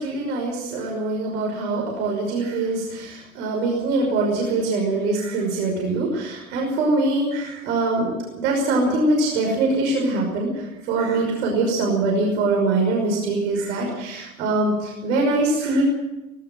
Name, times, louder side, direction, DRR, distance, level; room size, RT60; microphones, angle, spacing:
voice 1, 0.0-8.1 8.4-15.8, right 2 dB, 55° right, 0 dB, 5.8 m, -23 dB
18.5 x 18.0 x 7.8 m, 1.0 s
figure-of-eight pair, 85°, 43 cm